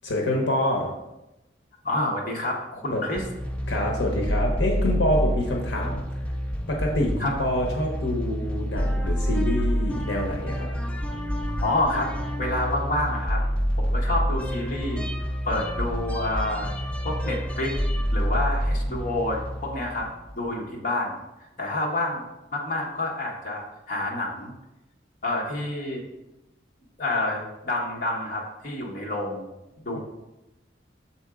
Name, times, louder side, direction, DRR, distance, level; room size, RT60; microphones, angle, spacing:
voice 1, 0.0-0.9 2.9-3.0 3.7-6.0 6.7-10.7, left 1 dB, 70° left, 0 dB, 1.0 m, -26 dB
voice 2, 1.8-3.2 7.2-7.3 11.6-13.4 13.8-15.1 15.5-16.7 17.0-17.7 18.1-20.1 20.3-21.2 21.6-22.2 22.5-24.5 25.2-26.0 27.0-29.5 29.8-30.0, left 2 dB, 45° left, -2 dB, 1.1 m, -28 dB
sound 1, 3.2-20.5, equal, 5° left, 0.4 m, -28 dB
6.6 x 4.4 x 3.6 m, 0.96 s
head